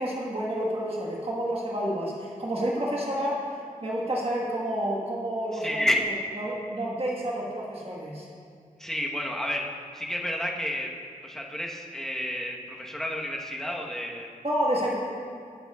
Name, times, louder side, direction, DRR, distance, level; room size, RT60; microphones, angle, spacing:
voice 1, 0.0-3.4 3.8-5.9 6.4-8.3 14.4-15.0, right 1 dB, 40° right, -4 dB, 1.4 m, -29 dB
voice 2, 5.5-6.0 8.8-9.7 9.9-10.9 11.2-14.3, equal, 5° left, -1 dB, 1.0 m, -30 dB
16.5 x 7.7 x 2.3 m, 2.3 s
wide cardioid pair, 90°, 15 cm